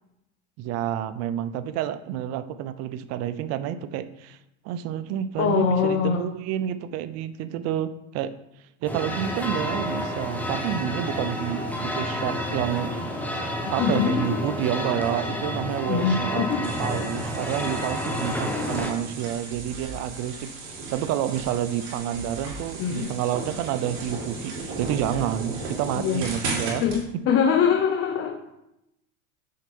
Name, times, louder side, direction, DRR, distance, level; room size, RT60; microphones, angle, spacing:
voice 1, 0.6-4.4 4.6-8.3 8.8-13.3 13.7-26.8, right 10 dB, 40° right, 13 dB, 0.5 m, -29 dB
voice 2, 5.4-6.3 13.8-14.4 15.9-16.6 22.8-23.1 25.9-26.2 26.8-28.4, left 7 dB, 35° left, 4 dB, 0.7 m, -23 dB
sound 1, 8.9-18.9, equal, 5° left, 0.9 m, -30 dB
sound 2, 16.6-27.0, right 3 dB, 65° right, 2.7 m, -36 dB
6.5 x 4.2 x 5.3 m, 0.87 s
supercardioid pair, 115°, 40 cm